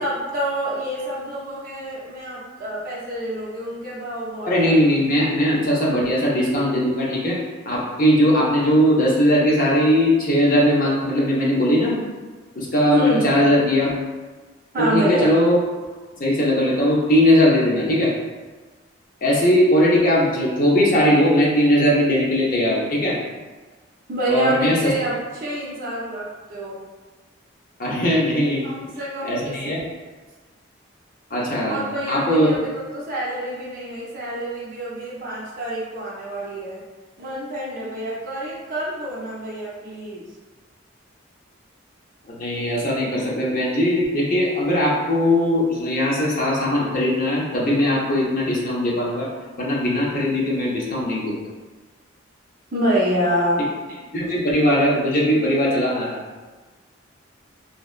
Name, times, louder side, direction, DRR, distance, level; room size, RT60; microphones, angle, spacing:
voice 1, 0.0-4.7 5.4-5.5 12.9-13.2 14.7-15.3 24.1-26.8 28.6-29.6 31.7-36.8 37.2-40.2 51.4-51.5 52.7-54.0, equal, 45° right, -6 dB, 0.5 m, -27 dB
voice 2, 4.4-7.4 7.6-12.0 12.6-13.9 14.8-15.6 16.2-18.1 19.2-23.2 24.3-24.8 27.8-28.6 29.2-29.8 31.3-31.8 32.1-32.5 42.3-49.3 49.6-51.4 54.1-56.2, equal, 45° left, -4 dB, 0.5 m, -19 dB
2.7 x 2.1 x 2.3 m, 1.3 s
head